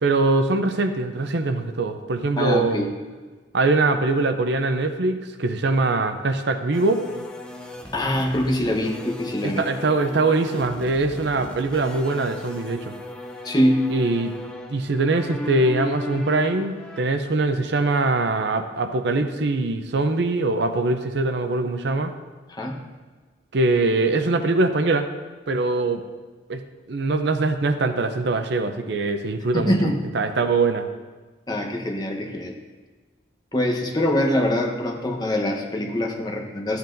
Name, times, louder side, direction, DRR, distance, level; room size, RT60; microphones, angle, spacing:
voice 1, 0.0-2.8 3.5-7.0 9.4-12.9 13.9-14.3 14.7-22.1 23.5-25.1 25.5-26.0 26.5-26.6 26.9-30.9, right 3 dB, 60° right, 8 dB, 0.6 m, -22 dB
voice 2, 2.4-2.9 7.9-9.6 13.4-14.0 22.5-22.8 29.5-30.0 31.5-32.5 33.5-36.8, left 1 dB, 20° left, 0 dB, 1.0 m, -23 dB
sound 1, 6.7-17.0, left 1 dB, 5° left, 0.6 m, -37 dB
14.0 x 7.9 x 2.6 m, 1.4 s
head